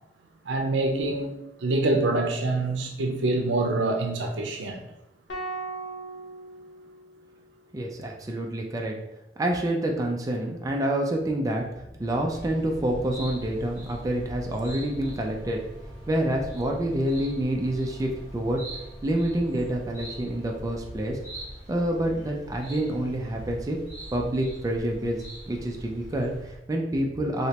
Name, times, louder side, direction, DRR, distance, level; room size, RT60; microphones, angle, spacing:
voice 1, 0.4-1.3 1.6-4.8, right 2 dB, 80° right, 3 dB, 0.6 m, -25 dB
sound 1, 5.3-7.6, right 2 dB, 75° left, 0.8 m, -38 dB
voice 2, 7.7-9.0 9.4-11.6 12.0-15.6 16.1-18.6 19.0-21.2 21.7-23.8 24.1-25.2 25.5-27.5, right 1 dB, 20° right, 0 dB, 0.4 m, -27 dB
sound 2, 11.2-22.6, right 1 dB, 55° left, 1.1 m, -47 dB
sound 3, 12.3-26.6, right 1 dB, 20° left, 1.1 m, -43 dB
3.2 x 2.9 x 2.8 m, 0.87 s
head